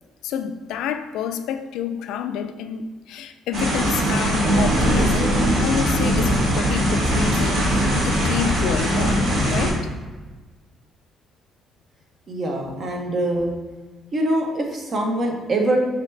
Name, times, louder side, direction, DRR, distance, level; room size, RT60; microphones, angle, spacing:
voice 1, 0.2-5.3 5.6-9.9, left 8 dB, 85° left, 8 dB, 0.3 m, -29 dB
sound 1, 3.5-9.7, equal, 65° right, 1.1 m, -20 dB
voice 2, 12.3-13.5 14.1-15.8, right 1 dB, 40° right, 1 dB, 0.8 m, -23 dB
4.8 x 3.4 x 3.2 m, 1.3 s
cardioid pair, 130°, 0 cm